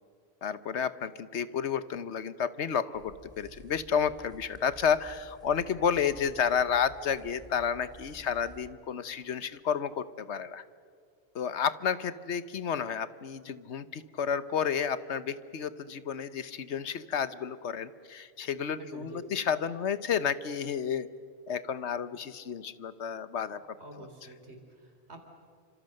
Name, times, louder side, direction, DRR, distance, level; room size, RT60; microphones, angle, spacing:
voice 1, 0.4-10.6 11.3-21.1 21.5-24.1, left 7 dB, 85° left, 14 dB, 1.2 m, -31 dB
sound 1, 2.9-8.7, right 1 dB, 5° right, 3.3 m, -53 dB
voice 2, 18.8-19.2 23.8-25.2, right 2 dB, 75° right, 4 dB, 4.0 m, -47 dB
28.5 x 26.0 x 6.6 m, 2.1 s
omnidirectional pair, 1.1 m